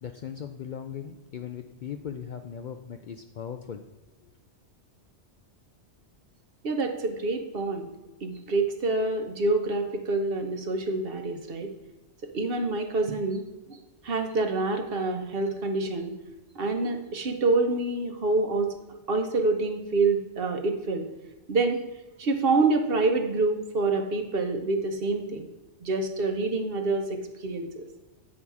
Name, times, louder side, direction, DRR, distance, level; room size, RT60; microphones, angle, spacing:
voice 1, 0.0-3.8, left 8 dB, 60° left, 6 dB, 0.5 m, -38 dB
voice 2, 6.6-7.9 8.2-11.7 12.3-13.4 14.0-16.1 16.5-18.7 19.1-21.0 21.5-21.8 22.2-25.5 25.8-27.8, right 3 dB, 55° right, 5 dB, 1.0 m, -27 dB
8.6 x 5.6 x 4.7 m, 1.1 s
omnidirectional pair, 1.2 m